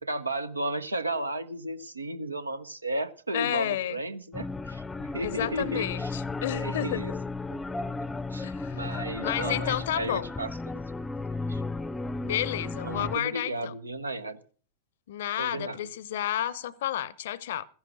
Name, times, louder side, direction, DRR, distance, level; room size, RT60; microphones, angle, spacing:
voice 1, 0.0-6.2 6.5-7.1 7.5-7.6 8.3-10.8 11.5-11.6 12.8-14.4 15.4-15.8, right 1 dB, 80° right, 0.9 m, -34 dB
voice 2, 3.3-4.0 5.2-7.2 8.4-10.3 12.2-13.7 15.1-17.7, left 12 dB, 55° left, 0.7 m, -31 dB
sound 1, 4.3-13.2, left 3 dB, 10° left, 0.6 m, -34 dB
14.5 x 10.5 x 6.1 m
figure-of-eight pair, 90°, 0 cm